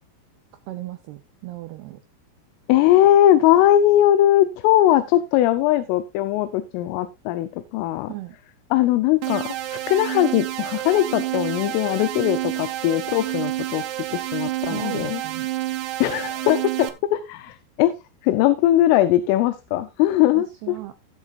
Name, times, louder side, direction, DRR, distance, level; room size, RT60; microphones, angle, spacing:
voice 1, 0.7-2.0 8.1-8.4 14.7-15.5 20.3-20.9, right 16 dB, 90° right, 8 dB, 2.2 m, -35 dB
voice 2, 2.7-8.1 8.7-13.8 14.1-15.2 16.0-18.0 18.2-20.8, left 13 dB, 85° left, 12 dB, 3.3 m, -20 dB
sound 1, 9.2-16.9, right 15 dB, 75° right, 2.9 m, -29 dB
18.0 x 7.5 x 2.4 m, 0.24 s
omnidirectional pair, 5.7 m